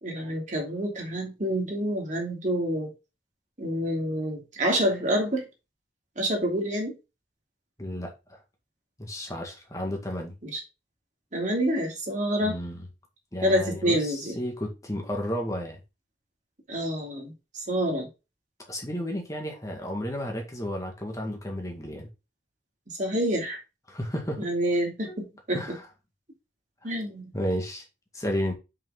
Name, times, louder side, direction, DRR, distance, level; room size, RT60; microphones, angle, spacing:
voice 1, 0.0-2.9 3.6-5.4 6.2-6.9 10.4-10.6 11.3-12.6 13.4-14.4 16.7-17.3 17.7-18.1 23.0-23.6 24.4-25.6 26.8-27.3, equal, 40° right, 3.0 m, -27 dB
voice 2, 7.8-8.4 9.0-10.3 12.4-12.9 13.3-15.8 18.7-22.1 23.9-24.5 25.0-25.2 25.5-25.9 26.8-26.9 27.3-27.8 28.1-28.5, equal, 15° left, 1.9 m, -32 dB
6.9 x 5.7 x 3.8 m
head